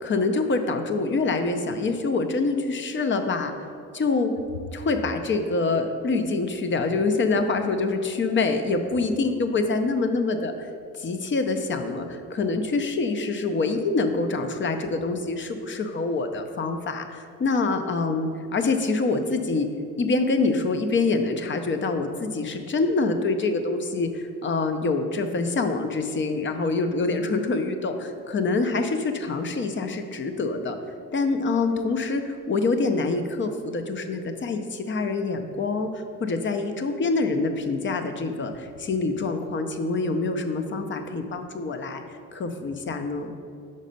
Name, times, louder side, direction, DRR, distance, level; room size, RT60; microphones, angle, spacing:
voice 1, 0.0-3.5 3.9-4.3 4.7-10.7 11.0-19.7 20.0-30.8 31.1-42.0 42.3-43.3, left 3 dB, 40° left, 7 dB, 0.6 m, -25 dB
5.3 x 4.1 x 5.3 m, 2.3 s
cardioid pair, 90°, 30 cm